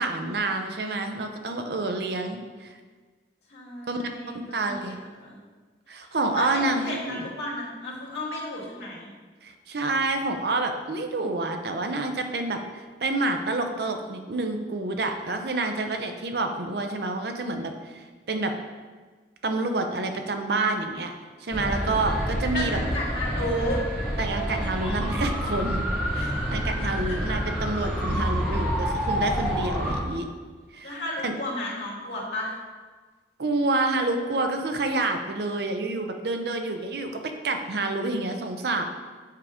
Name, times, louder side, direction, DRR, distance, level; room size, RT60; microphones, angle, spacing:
voice 1, 0.0-2.8 3.9-4.0 4.3-5.0 5.9-7.3 9.4-18.5 19.4-21.1 21.4-22.8 24.2-30.3 30.7-31.3 33.4-38.8, right 2 dB, 60° right, 5 dB, 0.6 m, -28 dB
voice 2, 3.5-5.4 6.0-9.1 22.5-23.8 26.1-26.5 27.0-27.2 30.8-32.5, left 1 dB, 75° left, -5 dB, 1.9 m, -33 dB
sound 1, 21.5-30.0, equal, 10° right, 1.3 m, -28 dB
7.4 x 3.6 x 5.0 m, 1.4 s
head